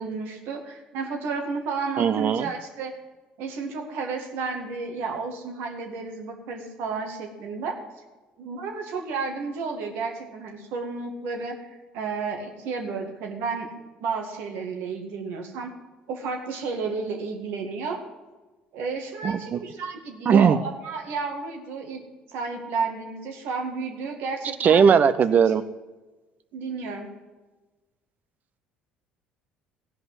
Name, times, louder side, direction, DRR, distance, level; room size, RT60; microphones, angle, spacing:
voice 1, 0.0-2.9 3.4-7.8 8.4-11.6 11.9-13.7 14.0-15.7 16.1-18.0 18.7-22.0 22.3-24.9 26.5-27.1, right 4 dB, 65° right, 3 dB, 2.0 m, -32 dB
voice 2, 2.0-2.5 19.2-19.6 20.3-20.6 24.6-25.6, right 7 dB, 45° right, 13 dB, 0.7 m, -18 dB
16.0 x 5.3 x 7.7 m, 1.2 s
hypercardioid pair, 60°, 4 cm